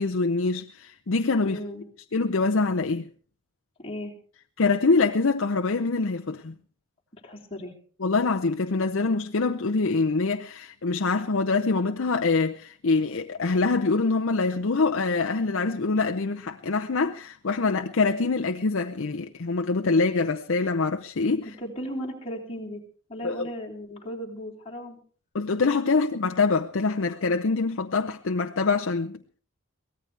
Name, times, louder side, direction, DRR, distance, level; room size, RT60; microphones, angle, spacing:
voice 1, 0.0-1.6 2.1-3.1 4.6-6.5 8.0-21.5 23.2-23.5 25.3-29.4, left 3 dB, 65° left, 0.7 m, -25 dB
voice 2, 1.4-1.8 3.8-4.1 7.2-7.7 21.6-22.8 23.1-25.0, equal, 25° left, 3.1 m, -36 dB
23.5 x 17.5 x 3.3 m
head